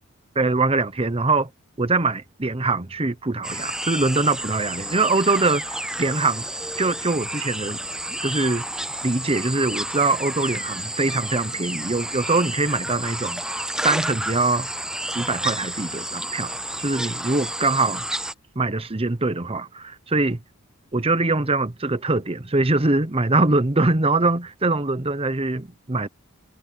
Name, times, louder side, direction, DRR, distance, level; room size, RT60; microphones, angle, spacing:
voice 1, 0.3-1.5 1.8-6.5 6.8-7.8 8.2-8.6 9.0-13.4 13.8-14.7 15.1-18.0 18.5-20.4 20.9-26.1, right 3 dB, 25° right, 1.0 m, -23 dB
sound 1, 3.4-18.3, right 1 dB, 5° right, 0.6 m, -31 dB
head